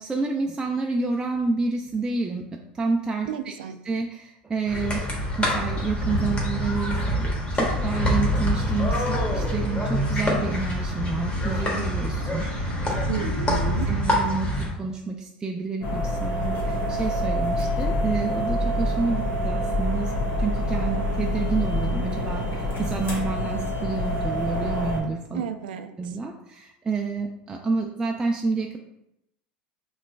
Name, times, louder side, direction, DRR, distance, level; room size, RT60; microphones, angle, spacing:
voice 1, 0.0-3.5 3.8-5.0 5.4-7.3 7.5-12.8 13.9-20.1 20.4-25.4 26.0-28.8, right 4 dB, 15° right, 1 dB, 0.4 m, -29 dB
voice 2, 3.3-3.8 13.1-13.9 25.3-26.1, right 9 dB, 80° right, 8 dB, 0.3 m, -32 dB
sound 1, 4.7-14.7, equal, 25° left, 1.3 m, -25 dB
sound 2, 15.8-25.0, equal, 45° left, 1.5 m, -26 dB
5.1 x 3.1 x 2.2 m, 0.82 s
hypercardioid pair, 95°, 5 cm